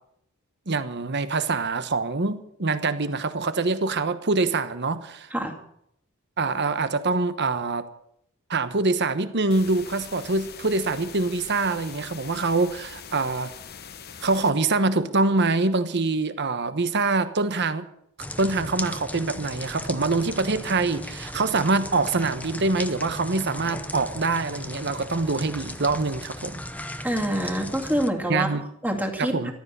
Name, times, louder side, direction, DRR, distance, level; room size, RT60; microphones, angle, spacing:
voice 1, 0.7-5.3 6.4-7.9 8.5-13.5 14.2-17.9 18.4-26.6 28.3-28.6 29.2-29.5, right 3 dB, 55° right, 11 dB, 1.1 m, -25 dB
sound 1, 9.5-14.5, left 7 dB, 50° left, 1.0 m, -42 dB
sound 2, 18.2-28.1, left 1 dB, 5° left, 0.7 m, -36 dB
voice 2, 27.0-28.5 28.8-29.5, equal, 10° right, 2 dB, 2.2 m, -26 dB
14.5 x 12.5 x 6.8 m, 0.73 s
head